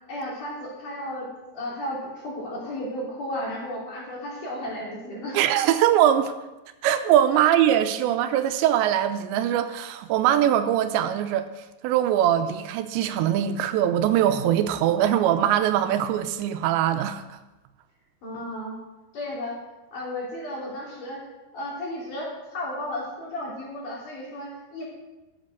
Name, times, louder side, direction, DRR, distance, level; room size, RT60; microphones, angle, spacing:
voice 1, 0.1-5.4 18.2-18.8 19.1-19.6 19.9-21.2 21.5-24.8, left 1 dB, 50° left, -4 dB, 4.7 m, -34 dB
voice 2, 5.3-6.4 6.8-11.5 11.8-17.4, right 11 dB, 85° right, 9 dB, 2.9 m, -22 dB
13.0 x 9.0 x 6.6 m, 1.1 s
omnidirectional pair, 5.1 m